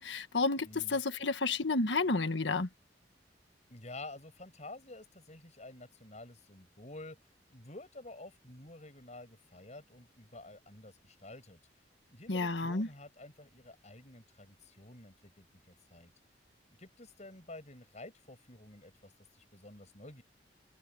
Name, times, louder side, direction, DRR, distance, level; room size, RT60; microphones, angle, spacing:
voice 1, 0.0-2.7 12.3-12.9, left 3 dB, 85° left, 1.5 m, -31 dB
voice 2, 0.6-1.0 3.7-11.6 12.1-16.1 16.8-20.2, left 2 dB, 40° left, 7.4 m, -50 dB
head